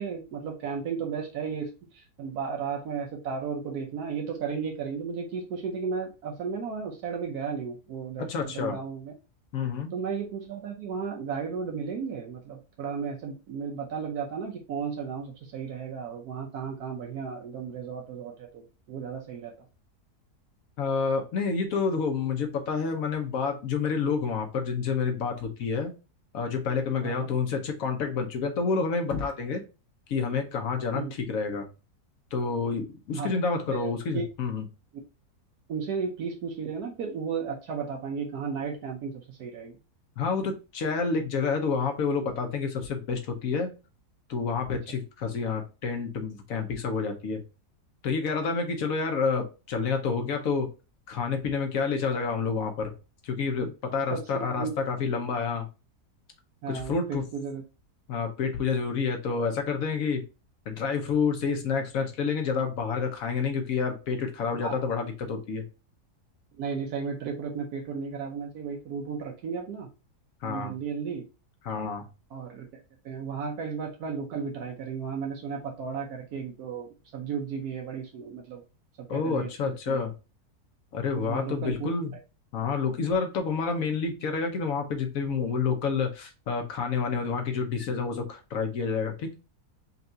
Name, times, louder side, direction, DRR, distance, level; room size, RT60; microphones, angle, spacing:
voice 1, 0.0-9.1 9.9-19.5 27.0-27.3 30.9-31.1 33.1-33.3 33.7-34.3 35.7-39.8 44.9-45.0 54.1-54.7 56.6-57.6 64.6-64.8 66.6-69.9 70.4-71.3 72.3-72.7 73.0-78.6 79.0-80.0 81.1-81.9, right 6 dB, 75° right, 1 dB, 1.2 m, -34 dB
voice 2, 8.2-8.8 9.5-9.9 20.8-25.9 26.3-29.6 30.1-31.7 32.3-34.6 40.2-43.7 44.3-47.4 48.0-50.7 51.1-52.9 53.2-55.6 56.7-57.2 58.1-60.2 60.7-65.6 70.4-70.7 71.6-72.1 79.1-80.1 80.9-82.1 82.5-89.3, left 5 dB, 65° left, 5 dB, 1.3 m, -29 dB
5.5 x 2.6 x 2.7 m, 0.31 s
omnidirectional pair, 1.7 m